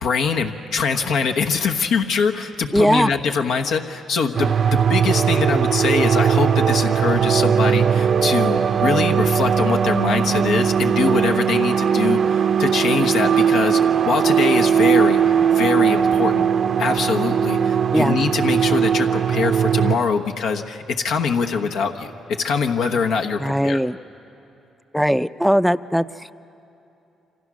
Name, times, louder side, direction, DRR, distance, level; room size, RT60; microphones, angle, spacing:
voice 1, 0.0-15.2 15.5-16.5 16.8-23.8, left 5 dB, 80° left, 3 dB, 1.2 m, -23 dB
voice 2, 2.7-3.1 17.9-18.2 23.4-24.0 24.9-26.3, equal, ahead, 13 dB, 0.5 m, -19 dB
sound 1, 4.4-20.0, right 7 dB, 55° right, 0.7 m, -19 dB
28.0 x 25.5 x 6.3 m, 2.8 s
cardioid pair, 90°, 0 cm